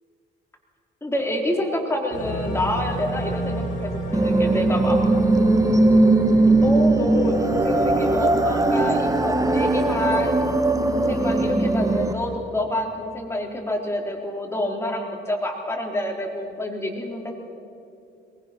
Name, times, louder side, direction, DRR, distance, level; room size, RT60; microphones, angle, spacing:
voice 1, 1.0-5.0 6.6-10.4 10.9-17.3, left 1 dB, 15° left, 0 dB, 3.8 m, -27 dB
sound 1, 2.1-12.4, equal, 40° left, 6.6 m, -32 dB
sound 2, 4.1-12.1, right 2 dB, 15° right, 1.3 m, -19 dB
23.0 x 19.5 x 6.1 m, 2.6 s
cardioid pair, 90°, 20 cm